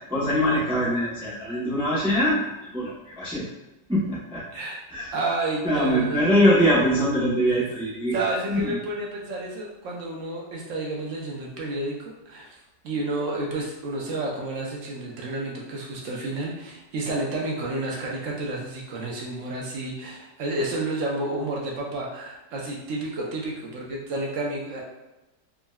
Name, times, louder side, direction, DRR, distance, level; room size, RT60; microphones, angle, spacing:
voice 1, 0.1-3.5 3.9-4.4 4.9-5.1 5.6-8.1 8.5-8.6, equal, 10° right, -9 dB, 0.3 m, -23 dB
voice 2, 5.1-6.2 8.1-12.5 12.8-24.8, right 2 dB, 60° right, -3 dB, 0.8 m, -30 dB
3.6 x 2.1 x 2.2 m, 0.99 s
omnidirectional pair, 1.8 m